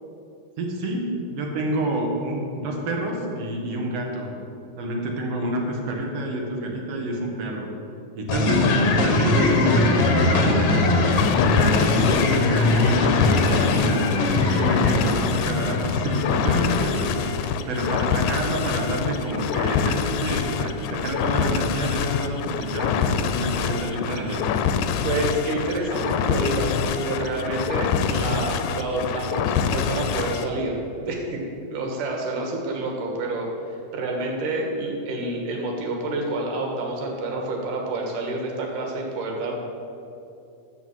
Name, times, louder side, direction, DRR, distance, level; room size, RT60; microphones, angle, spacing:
voice 1, 0.6-4.3 4.8-7.7 8.1-17.2 17.7-24.5, right 1 dB, 60° right, 0 dB, 2.4 m, -28 dB
sound 1, 8.3-16.9, left 2 dB, 65° left, 1.6 m, -21 dB
sound 2, 11.1-30.5, left 7 dB, 80° left, 2.0 m, -25 dB
voice 2, 17.2-17.7 25.0-30.8 31.1-39.5, right 2 dB, 85° right, 1 dB, 3.1 m, -28 dB
13.0 x 4.7 x 7.7 m, 2.7 s
omnidirectional pair, 3.6 m